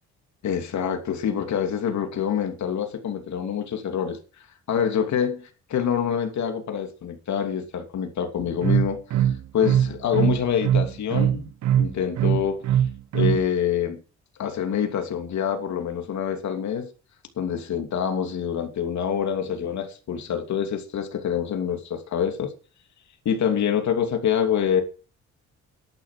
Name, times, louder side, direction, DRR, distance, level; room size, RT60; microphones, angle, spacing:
voice 1, 0.4-11.5 11.8-12.8 13.1-14.0 14.4-16.9 17.4-22.5 23.2-24.8, left 8 dB, 65° left, 2.8 m, -26 dB
sound 1, 8.4-13.4, right 10 dB, 70° right, 0.9 m, -22 dB
11.5 x 9.4 x 7.5 m
cardioid pair, 90°, 30 cm